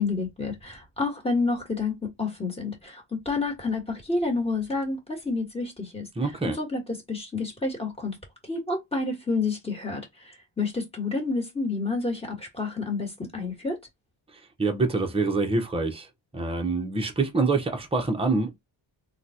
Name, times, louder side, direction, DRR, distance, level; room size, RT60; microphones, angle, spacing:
voice 1, 0.0-6.1 6.5-8.2 8.4-13.8, left 3 dB, 10° left, 1.4 m, -29 dB
voice 2, 6.2-6.6 14.6-16.1 16.3-18.6, right 3 dB, 10° right, 0.7 m, -25 dB
3.7 x 2.3 x 2.7 m
wide cardioid pair, 120°, 50 cm